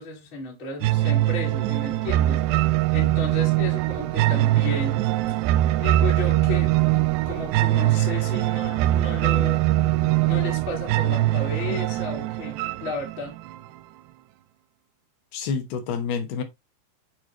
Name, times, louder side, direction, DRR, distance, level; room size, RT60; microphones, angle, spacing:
voice 1, 0.0-5.0 5.8-6.7 7.2-9.7 10.3-13.3, left 3 dB, 45° left, 1.6 m, -34 dB
sound 1, 0.8-13.8, right 15 dB, 85° right, 2.4 m, -22 dB
voice 2, 15.3-16.4, left 6 dB, 70° left, 2.7 m, -28 dB
9.0 x 4.8 x 2.9 m
omnidirectional pair, 5.2 m